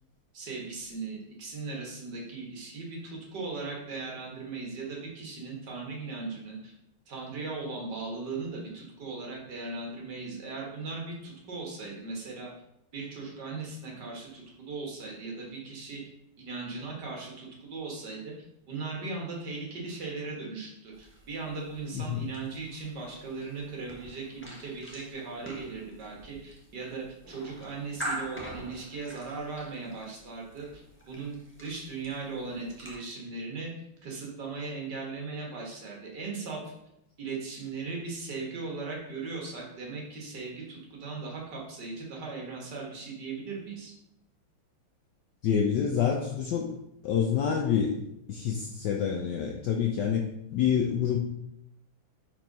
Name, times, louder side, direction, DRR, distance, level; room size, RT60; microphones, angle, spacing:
voice 1, 0.3-6.7 7.1-12.5 12.9-16.0 16.4-18.3 18.7-33.7 34.0-36.6 37.2-43.9, right 4 dB, 50° right, -1 dB, 2.0 m, -38 dB
sound 1, 20.9-33.0, equal, 10° left, 0.5 m, -45 dB
voice 2, 21.9-22.2 45.4-46.7 47.0-48.0 48.3-51.2, left 8 dB, 70° left, 2 dB, 1.0 m, -27 dB
4.6 x 4.5 x 5.2 m, 0.79 s
omnidirectional pair, 2.4 m